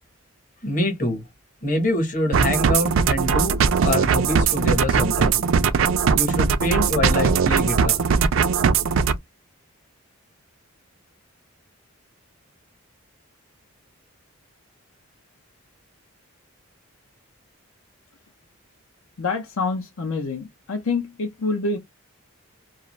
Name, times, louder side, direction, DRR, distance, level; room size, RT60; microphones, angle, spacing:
voice 1, 0.6-1.2 1.6-3.6 3.8-5.4 6.1-8.1, left 1 dB, 35° left, 1.0 m, -25 dB
sound 1, 2.3-9.2, right 6 dB, 65° right, 0.4 m, -20 dB
voice 2, 19.2-21.8, left 3 dB, 70° left, 0.6 m, -26 dB
2.5 x 2.3 x 3.0 m
head